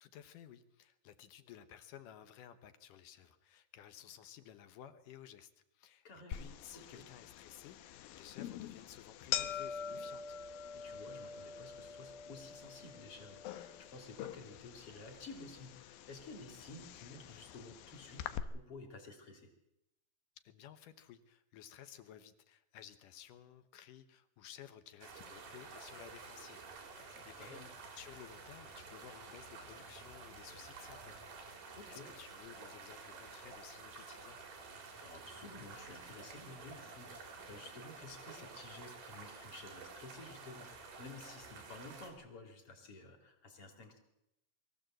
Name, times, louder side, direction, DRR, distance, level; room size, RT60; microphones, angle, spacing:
voice 1, 0.0-10.4 20.4-27.7 28.0-31.1 31.5-34.4, left 10 dB, 70° left, 11 dB, 2.5 m, -55 dB
voice 2, 6.0-7.0 10.7-19.5 27.0-27.7 31.7-32.1 35.0-44.0, left 3 dB, 40° left, 4 dB, 3.5 m, -53 dB
sound 1, 6.3-18.4, left 9 dB, 90° left, 2.8 m, -45 dB
sound 2, 25.0-42.1, right 4 dB, 90° right, 5.0 m, -51 dB
23.0 x 15.0 x 7.7 m, 0.86 s
omnidirectional pair, 4.1 m